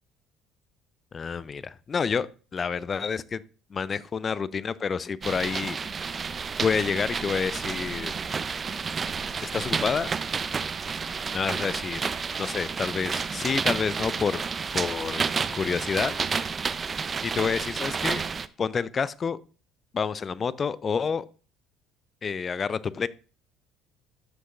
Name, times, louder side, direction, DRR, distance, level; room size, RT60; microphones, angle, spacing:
voice 1, 1.1-2.3 2.5-3.4 3.7-5.8 6.6-8.2 9.4-10.1 11.3-12.0 12.4-14.4 14.7-16.2 17.2-18.2 18.6-19.4 19.9-21.2 22.2-23.1, left 6 dB, 35° left, 0.4 m, -28 dB
sound 1, 5.2-18.5, right 5 dB, 35° right, 0.5 m, -30 dB
12.5 x 6.4 x 2.5 m
hypercardioid pair, 60°, 0 cm